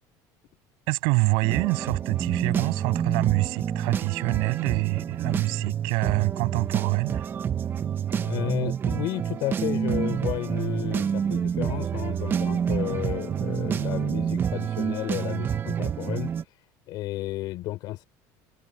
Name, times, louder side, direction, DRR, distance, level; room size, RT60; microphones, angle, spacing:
voice 1, 0.9-7.3, right 30 dB, 80° right, 7.1 m, -26 dB
sound 1, 1.4-16.4, right 8 dB, 25° right, 0.6 m, -28 dB
voice 2, 8.2-16.3 16.9-18.1, left 16 dB, 55° left, 3.5 m, -32 dB
cardioid pair, 165°, 8 cm